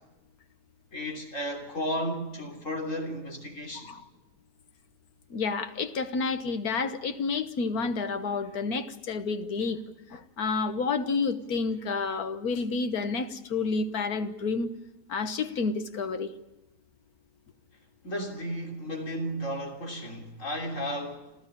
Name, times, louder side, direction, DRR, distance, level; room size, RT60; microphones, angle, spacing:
voice 1, 0.9-3.9 18.0-21.3, equal, 50° left, 3.7 m, -34 dB
voice 2, 5.3-9.8 10.1-14.7 15.1-16.3, left 4 dB, 65° left, 1.7 m, -30 dB
28.0 x 13.5 x 9.9 m
omnidirectional pair, 1.8 m